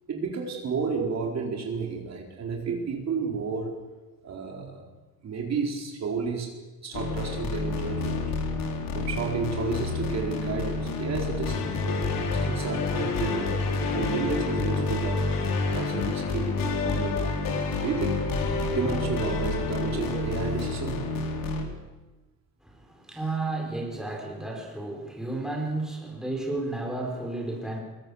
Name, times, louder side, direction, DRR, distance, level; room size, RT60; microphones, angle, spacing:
voice 1, 0.1-3.8 4.2-4.9 5.2-8.2 8.9-11.6 12.3-15.3 15.7-18.3 18.7-21.0, right 5 dB, 50° right, 1 dB, 4.2 m, -31 dB
sound 1, 6.9-21.6, left 3 dB, 75° left, 4.4 m, -28 dB
voice 2, 22.6-27.8, right 2 dB, ahead, 0 dB, 4.9 m, -32 dB
25.0 x 22.5 x 7.2 m, 1.1 s
cardioid pair, 155°, 34 cm